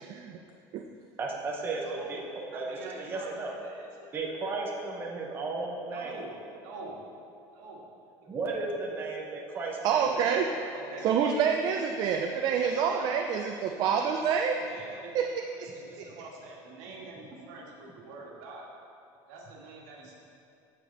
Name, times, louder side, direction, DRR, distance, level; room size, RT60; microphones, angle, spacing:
voice 1, 1.2-2.2 2.5-3.5 4.1-6.2 8.3-10.1 17.3-17.4, right 3 dB, 25° right, -1 dB, 0.9 m, -34 dB
voice 2, 1.8-4.1 5.9-6.3 6.6-7.0 7.5-7.8 10.4-11.1 12.6-13.1 13.7-14.2 14.5-15.3 15.6-18.7 19.3-20.1, right 3 dB, 75° right, -2 dB, 1.8 m, -46 dB
voice 3, 9.8-10.5 11.0-14.6 15.1-15.3 15.6-15.7, right 7 dB, 45° right, 3 dB, 0.5 m, -27 dB
14.0 x 5.1 x 4.0 m, 2.6 s
cardioid pair, 160°, 9 cm